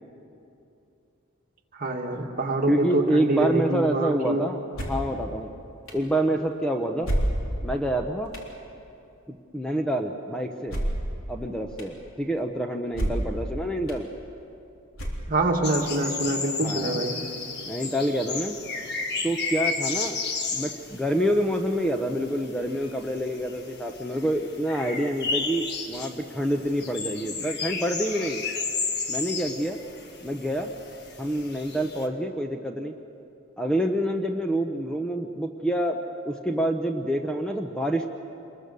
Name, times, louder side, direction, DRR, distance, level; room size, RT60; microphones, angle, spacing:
voice 1, 1.7-4.4 15.3-17.2, right 2 dB, 40° right, 0 dB, 2.2 m, -26 dB
voice 2, 2.7-4.6 4.9-5.5 5.9-7.1 7.6-8.3 9.3-10.8 11.3-14.1 16.6-17.0 17.7-18.6 19.2-20.2 20.5-28.4 29.1-29.8 30.2-30.7 31.2-32.9 33.6-36.0 36.2-38.1, right 1 dB, 5° left, 4 dB, 0.7 m, -27 dB
sound 1, 4.7-5.1 5.9-6.0 7.0-7.7 8.3-8.5 10.7-11.1 11.8-11.9 12.9-13.4 13.9-14.0 14.9-15.5, right 1 dB, 75° left, 3.8 m, -28 dB
sound 2, 15.6-32.1, left 4 dB, 50° left, 1.6 m, -33 dB
26.5 x 21.5 x 6.8 m, 2.8 s
head